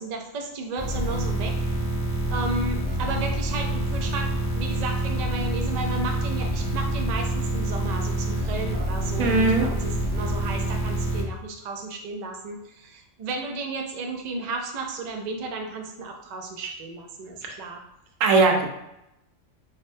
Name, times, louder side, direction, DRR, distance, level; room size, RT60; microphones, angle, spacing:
voice 1, 0.0-1.5 2.3-17.8, right 3 dB, 65° right, 2 dB, 0.4 m, -33 dB
sound 1, 0.8-11.2, right 1 dB, 75° left, 1.5 m, -27 dB
voice 2, 9.2-9.7 17.5-17.6 18.2-18.7, right 3 dB, 85° right, 2 dB, 1.0 m, -19 dB
5.1 x 2.1 x 2.6 m, 0.85 s
omnidirectional pair, 1.3 m